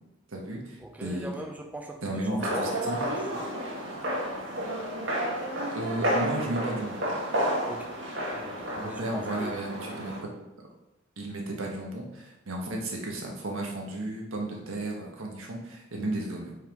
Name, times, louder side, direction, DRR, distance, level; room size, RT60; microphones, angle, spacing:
voice 1, 0.3-1.3 2.0-3.0 5.7-7.0 8.8-10.3 11.2-16.5, right 1 dB, 90° right, 0 dB, 1.4 m, -34 dB
voice 2, 0.8-3.6 7.7-7.9 8.2-9.6, right 1 dB, 5° right, 2 dB, 0.5 m, -41 dB
sound 1, 2.4-10.2, equal, 65° right, 1.5 m, -31 dB
5.5 x 4.6 x 4.6 m, 0.94 s
head